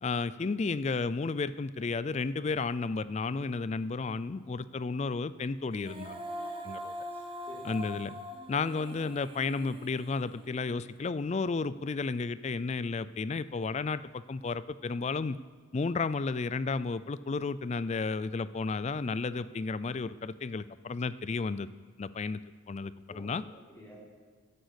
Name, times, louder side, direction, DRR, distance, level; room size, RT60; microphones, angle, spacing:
voice 1, 0.0-6.2 6.6-6.9 7.6-8.1 8.5-15.4 15.7-21.7 22.0-22.4 22.7-23.4, left 4 dB, 30° left, 16 dB, 0.3 m, -32 dB
Female singing, 5.7-10.9, equal, 25° right, 1.0 m, -42 dB
voice 2, 7.1-7.8 23.1-24.0, left 1 dB, 10° left, -6 dB, 3.5 m, -50 dB
10.5 x 9.8 x 8.1 m, 1.5 s
head